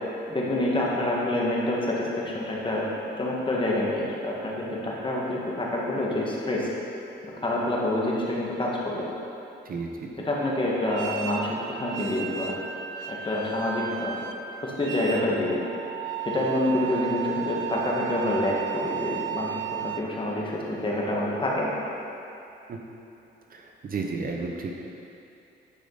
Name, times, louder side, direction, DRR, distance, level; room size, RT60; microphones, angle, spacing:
voice 1, 0.3-2.9 3.2-6.7 7.4-9.1 10.2-12.5 13.1-14.2 14.6-15.6 16.2-21.7, left 1 dB, 25° left, -4 dB, 1.6 m, -27 dB
sound 1, 10.8-20.0, right 10 dB, 85° right, 0.5 m, -34 dB
voice 2, 23.5-24.7, right 4 dB, 45° right, 1 dB, 0.8 m, -32 dB
9.9 x 5.1 x 4.0 m, 2.8 s
cardioid pair, 90°, 20 cm